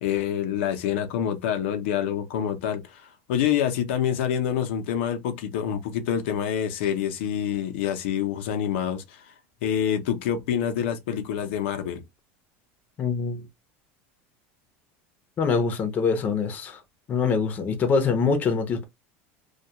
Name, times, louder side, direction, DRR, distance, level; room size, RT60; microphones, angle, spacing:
voice 1, 0.0-9.3 9.6-12.0, left 9 dB, 85° left, 0.6 m, -27 dB
voice 2, 13.0-13.4 15.4-16.8 17.1-18.9, left 5 dB, 30° left, 0.6 m, -24 dB
2.2 x 2.2 x 2.8 m
supercardioid pair, 155°, 6 cm